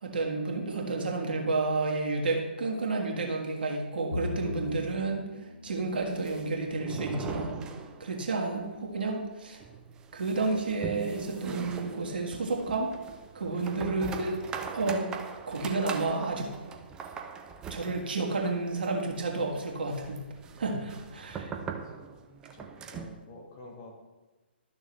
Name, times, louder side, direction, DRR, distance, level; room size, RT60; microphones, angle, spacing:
voice 1, 0.0-5.2 5.6-7.5 8.0-9.6 10.1-13.0 13.3-14.4 14.7-15.1 15.5-16.5 17.7-20.2 20.6-21.5, right 3 dB, 60° right, 0 dB, 1.7 m, -31 dB
Bowed string instrument, 4.1-7.6, left 3 dB, 80° left, 0.9 m, -41 dB
sound 1, 6.0-8.4 8.6-8.7 9.1-9.2 9.6-23.2, right 6 dB, 15° right, 0.5 m, -41 dB
voice 2, 20.8-21.5 22.5-24.0, left 2 dB, 35° left, 0 dB, 1.6 m, -50 dB
12.5 x 6.2 x 3.2 m, 1.2 s
figure-of-eight pair, 130°, 6 cm